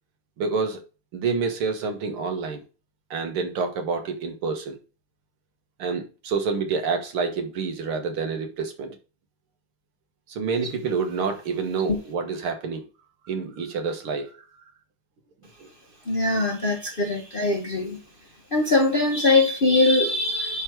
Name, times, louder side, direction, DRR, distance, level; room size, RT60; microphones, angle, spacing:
voice 1, 0.4-0.8 1.1-2.6 3.1-4.8 5.8-9.0 10.3-12.9 13.3-14.4, right 5 dB, 80° right, 2.3 m, -28 dB
voice 2, 16.1-18.0 18.5-20.6, left 2 dB, 35° left, 0.9 m, -22 dB
10.5 x 3.7 x 4.7 m
omnidirectional pair, 2.3 m